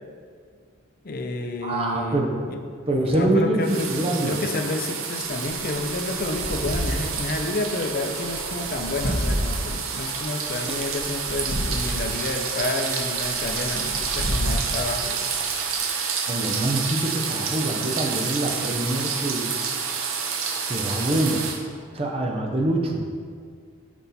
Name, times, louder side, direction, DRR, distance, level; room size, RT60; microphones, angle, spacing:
voice 1, 1.0-2.2 2.5-2.6 3.0-15.2, left 2 dB, 45° left, 5 dB, 0.5 m, -30 dB
voice 2, 1.6-2.3 2.9-4.4 10.7-10.8 16.3-19.5 20.7-21.5 21.9-23.0, right 1 dB, 25° right, 0 dB, 0.7 m, -25 dB
sound 1, 3.6-21.6, right 6 dB, 80° right, 0.7 m, -29 dB
sound 2, 5.2-15.8, equal, 70° left, 1.1 m, -31 dB
6.1 x 5.3 x 4.1 m, 2.1 s
head